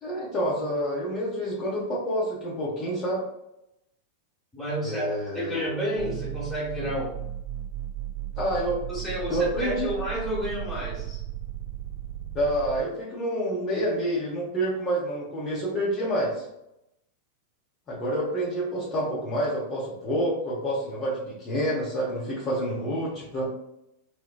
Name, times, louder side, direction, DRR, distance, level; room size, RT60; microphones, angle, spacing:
voice 1, 0.0-3.2 4.8-5.6 8.4-8.8 9.3-9.9 12.3-16.4 17.9-23.5, equal, 30° left, -6 dB, 0.8 m, -28 dB
voice 2, 4.5-5.1 5.3-7.2 8.9-11.2, equal, ahead, -7 dB, 1.2 m, -31 dB
sound 1, 6.0-12.8, right 12 dB, 35° right, 0.4 m, -35 dB
3.8 x 2.1 x 2.3 m, 0.85 s
figure-of-eight pair, 90°, 0 cm